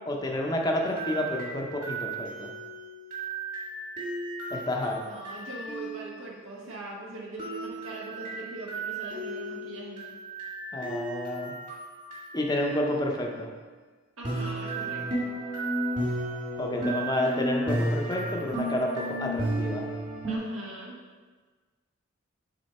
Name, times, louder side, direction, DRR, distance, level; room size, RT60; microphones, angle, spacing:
voice 1, 0.1-2.5 4.5-5.0 10.7-11.5 12.3-13.5 16.6-19.9, left 1 dB, 20° left, 0 dB, 0.7 m, -30 dB
sound 1, 0.8-6.1 7.4-13.2 14.2-20.4, right 1 dB, 40° right, 1.9 m, -33 dB
voice 2, 5.0-10.0 14.2-15.3 20.3-21.0, right 2 dB, 80° right, -3 dB, 1.3 m, -41 dB
6.6 x 3.9 x 4.2 m, 1.4 s
head